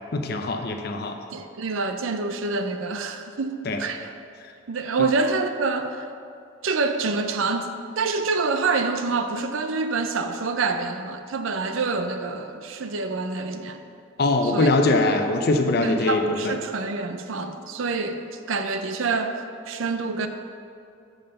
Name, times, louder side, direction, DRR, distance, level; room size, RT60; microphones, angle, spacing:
voice 1, 0.1-1.2 3.7-3.8 14.2-16.5, left 2 dB, 50° left, 5 dB, 0.6 m, -22 dB
voice 2, 1.3-4.1 4.7-6.1 6.6-13.8 14.4-14.7 15.8-19.4 19.7-20.3, right 4 dB, 80° right, 7 dB, 0.5 m, -27 dB
7.1 x 5.5 x 6.7 m, 2.5 s
head